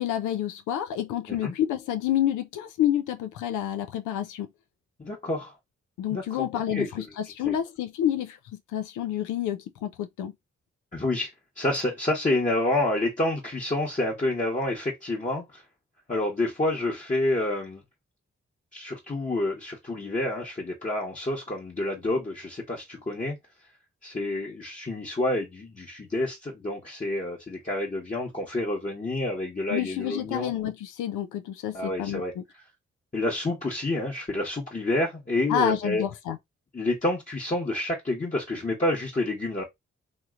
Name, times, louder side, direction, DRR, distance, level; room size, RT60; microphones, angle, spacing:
voice 1, 0.0-4.5 6.0-8.4 8.7-10.3 29.7-32.4 35.5-36.4, left 11 dB, 85° left, 0.5 m, -29 dB
voice 2, 5.0-5.5 6.1-6.5 6.7-6.9 7.5-7.6 10.9-11.3 11.6-15.6 16.1-17.8 18.7-23.4 24.0-30.5 31.7-32.3 33.1-36.0 36.7-39.6, left 2 dB, 25° left, 1.0 m, -28 dB
3.0 x 2.8 x 2.4 m
supercardioid pair, 40°, 29 cm